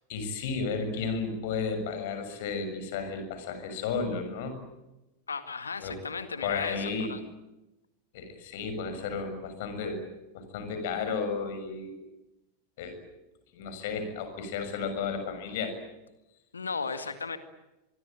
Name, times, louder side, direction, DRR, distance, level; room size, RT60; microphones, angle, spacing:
voice 1, 0.1-4.5 5.8-6.0 6.4-7.1 8.1-10.0 10.3-12.0 12.8-13.0 13.5-15.7, left 5 dB, 50° left, 8 dB, 6.8 m, -33 dB
voice 2, 5.3-7.2 16.5-17.4, left 5 dB, 75° left, 10 dB, 1.9 m, -35 dB
25.5 x 23.0 x 9.0 m, 0.98 s
figure-of-eight pair, 90°, 0 cm